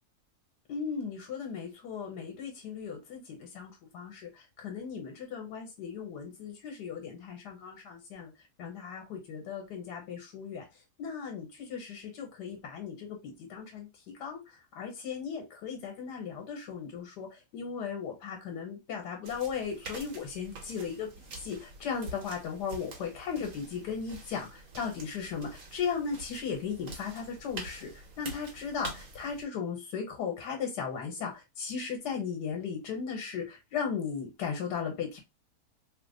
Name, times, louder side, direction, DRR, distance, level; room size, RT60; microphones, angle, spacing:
voice 1, 0.7-8.3 8.6-10.6 11.0-13.9 14.2-21.1 21.4-35.2, left 6 dB, 90° left, 1.5 m, -37 dB
sound 1, 19.2-29.4, right 2 dB, 60° right, 1.3 m, -46 dB
3.3 x 2.1 x 3.7 m
omnidirectional pair, 1.7 m